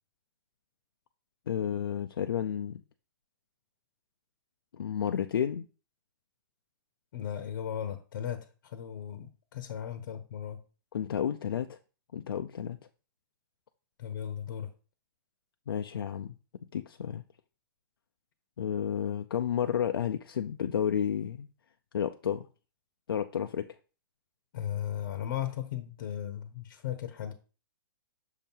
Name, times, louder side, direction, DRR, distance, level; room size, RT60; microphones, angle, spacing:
voice 1, 1.5-2.8 4.7-5.7 10.9-11.8 12.1-12.8 15.7-16.3 16.7-17.2 18.6-21.5 21.9-22.5 23.1-23.7, left 8 dB, 85° left, 0.4 m, -31 dB
voice 2, 7.1-10.6 14.0-14.7 24.5-27.3, left 10 dB, 60° left, 0.8 m, -36 dB
6.4 x 2.8 x 5.3 m
hypercardioid pair, 135°, 12 cm